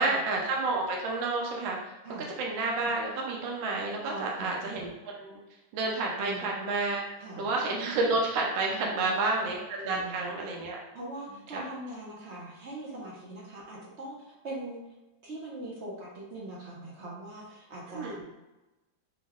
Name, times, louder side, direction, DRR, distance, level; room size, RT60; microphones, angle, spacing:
voice 1, 0.0-1.9 2.4-5.4 5.7-7.0 7.4-10.8 11.5-11.6 17.9-18.2, right 3 dB, 75° right, -1 dB, 1.4 m, -30 dB
voice 2, 4.0-4.8 6.2-6.4 7.2-7.5 8.7-9.4 9.8-10.3 10.9-14.8 15.2-18.1, right 1 dB, 55° right, -4 dB, 0.8 m, -41 dB
5.2 x 2.3 x 3.5 m, 1.1 s
omnidirectional pair, 2.2 m